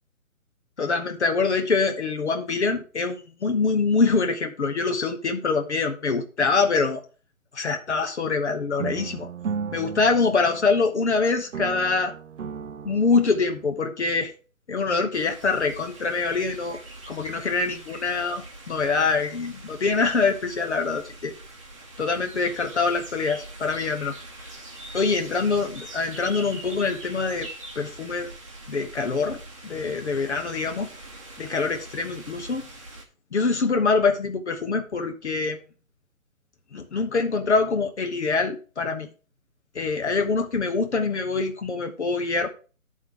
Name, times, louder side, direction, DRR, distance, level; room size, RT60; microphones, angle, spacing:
voice 1, 0.8-7.0 7.5-9.3 9.7-12.1 12.8-14.3 14.7-16.8 17.1-21.3 22.0-24.1 24.9-27.5 27.8-28.3 28.7-29.4 29.6-30.9 31.4-32.7 33.3-35.6 36.7-39.1 39.7-42.5, left 4 dB, 50° left, 5 dB, 1.0 m, -24 dB
sound 1, 8.8-11.2 11.5-13.8, right 7 dB, 60° right, 0.6 m, -35 dB
sound 2, 15.1-33.0, right 2 dB, 25° right, 1.0 m, -43 dB
11.0 x 3.7 x 4.7 m, 0.36 s
hypercardioid pair, 170°, 43 cm